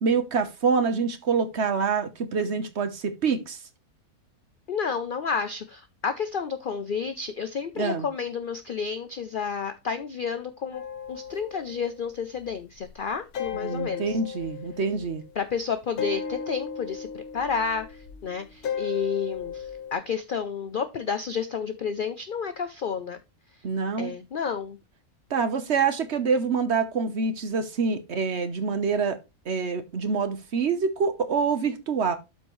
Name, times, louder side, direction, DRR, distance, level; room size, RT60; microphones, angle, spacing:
voice 1, 0.0-3.6 7.8-8.1 13.5-15.2 23.6-24.1 25.3-29.2 29.5-32.1, right 5 dB, 50° right, 1.1 m, -26 dB
voice 2, 4.7-10.8 11.1-14.2 15.4-23.2 24.0-24.8, left 6 dB, 60° left, 0.5 m, -31 dB
sound 1, 10.7-12.5 12.8-15.4 16.0-19.9, left 7 dB, 80° left, 1.6 m, -36 dB
12.5 x 4.5 x 3.1 m
omnidirectional pair, 1.6 m